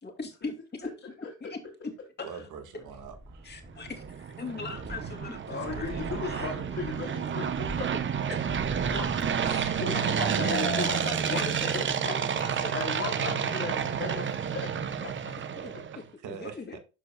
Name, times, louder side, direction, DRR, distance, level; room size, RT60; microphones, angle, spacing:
voice 1, 0.0-0.9 1.2-1.6 2.2-2.5 3.4-6.5 8.3-8.9 9.4-13.5 15.6-15.7 16.3-16.8, left 4 dB, 35° left, 2.4 m, -40 dB
voice 2, 2.2-3.5 15.9-16.8, right 7 dB, 80° right, 1.6 m, -44 dB
sound 1, 2.9-4.3 4.6-9.9 10.2-10.3, right 1 dB, 10° right, 1.8 m, -44 dB
sound 2, 3.7-16.0, right 7 dB, 40° right, 0.8 m, -30 dB
voice 3, 5.5-7.9 8.9-10.0 10.4-10.9 11.3-12.1 12.7-15.3 15.7-15.8, left 4 dB, 50° left, 3.0 m, -37 dB
12.5 x 4.6 x 2.2 m
cardioid pair, 90°, 30 cm